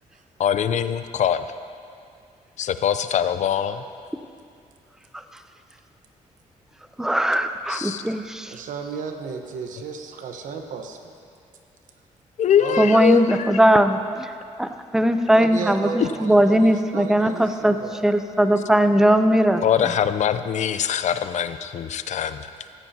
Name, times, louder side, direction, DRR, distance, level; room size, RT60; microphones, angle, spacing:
voice 1, 0.4-1.4 2.6-3.8 7.7-8.0 12.4-13.5 16.0-16.1 19.6-22.5, left 8 dB, 60° left, 11 dB, 0.5 m, -22 dB
voice 2, 7.0-8.6 12.8-14.3 14.6-17.8 18.0-19.6, right 1 dB, 5° right, 9 dB, 0.6 m, -19 dB
voice 3, 8.5-11.1 12.6-13.0 15.2-18.1, right 5 dB, 80° right, 5 dB, 1.1 m, -34 dB
16.5 x 14.0 x 2.9 m, 2.3 s
cardioid pair, 100°, 13 cm